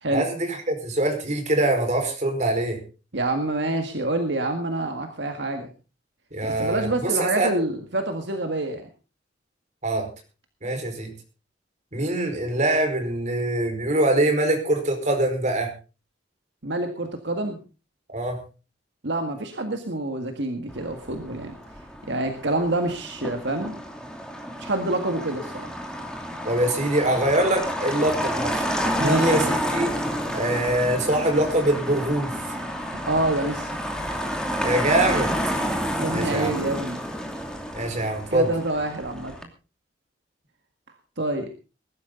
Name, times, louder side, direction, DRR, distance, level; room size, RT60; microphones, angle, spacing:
voice 1, 0.1-2.8 6.3-7.5 9.8-10.0 10.6-11.1 11.9-15.7 18.1-18.4 26.4-28.6 29.0-29.9 30.3-32.3 34.6-35.3 36.1-36.5 37.7-38.5, right 1 dB, 40° right, 4 dB, 4.9 m, -23 dB
voice 2, 3.1-5.7 6.4-8.9 16.6-17.6 19.0-21.5 22.1-23.8 24.6-25.7 29.0-29.4 32.9-33.7 36.0-37.0 38.3-39.3 41.2-41.5, right 2 dB, 70° right, 5 dB, 1.9 m, -27 dB
Motor vehicle (road), 20.7-39.4, equal, 5° left, 2.7 m, -30 dB
21.0 x 12.5 x 3.9 m, 0.33 s
head